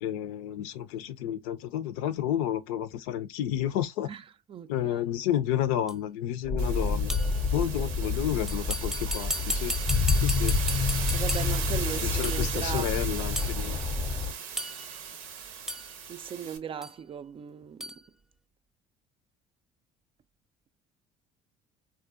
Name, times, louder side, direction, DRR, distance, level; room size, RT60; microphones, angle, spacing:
voice 1, 0.0-4.1 4.7-7.2 7.5-9.8 10.2-10.6 12.0-13.8, left 11 dB, 75° left, 0.5 m, -31 dB
voice 2, 4.1-5.0 7.7-7.9 11.1-13.5 15.7-18.0, right 8 dB, 35° right, 0.4 m, -39 dB
sound 1, 5.9-6.0 7.1-7.4 8.5-11.7 12.2-12.5 13.3-13.6 14.6-15.0 15.7-15.9 16.8-16.9 17.8-18.0, equal, 5° right, 0.8 m, -35 dB
sound 2, 6.4-14.3, left 4 dB, 25° left, 0.5 m, -28 dB
sound 3, 6.6-16.6, right 7 dB, 80° right, 0.6 m, -37 dB
3.6 x 2.3 x 2.4 m
hypercardioid pair, 65°, 17 cm